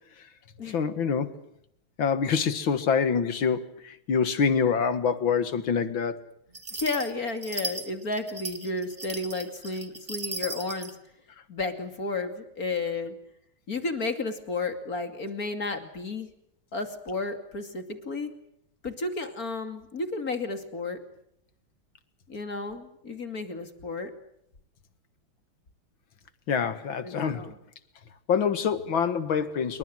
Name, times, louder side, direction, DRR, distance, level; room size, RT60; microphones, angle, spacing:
voice 1, 0.7-1.4 2.0-6.2 26.5-27.5 28.3-29.8, left 6 dB, 70° left, 2.4 m, -26 dB
sound 1, 6.5-10.9, right 2 dB, 25° right, 2.3 m, -37 dB
voice 2, 6.7-10.9 11.5-13.1 13.7-16.3 16.7-18.3 18.8-21.0 22.3-24.1 27.0-27.5, left 3 dB, 45° left, 3.0 m, -32 dB
27.5 x 23.5 x 7.8 m
omnidirectional pair, 2.2 m